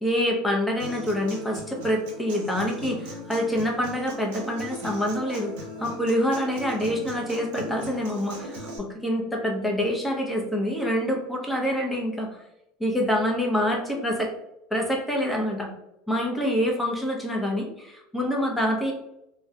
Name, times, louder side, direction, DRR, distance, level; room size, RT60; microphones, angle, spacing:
voice 1, 0.0-12.4 12.8-14.3 14.7-15.7 16.1-18.9, equal, 5° left, 0 dB, 0.6 m, -26 dB
Human voice / Acoustic guitar, 0.8-8.8, equal, 80° right, 0.6 m, -39 dB
2.3 x 2.0 x 2.7 m, 0.83 s
supercardioid pair, 115°, 0 cm